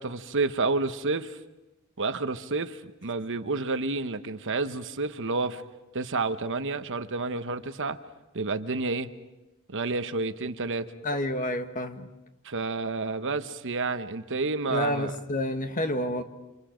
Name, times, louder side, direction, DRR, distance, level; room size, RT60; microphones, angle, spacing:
voice 1, 0.0-1.4 2.0-5.6 5.9-8.0 8.3-9.1 9.7-10.8 12.4-15.1, right 3 dB, 60° right, 10 dB, 1.0 m, -30 dB
voice 2, 11.0-12.1 14.7-16.2, left 1 dB, 40° left, 8 dB, 1.4 m, -29 dB
29.5 x 27.0 x 5.1 m, 1.0 s
head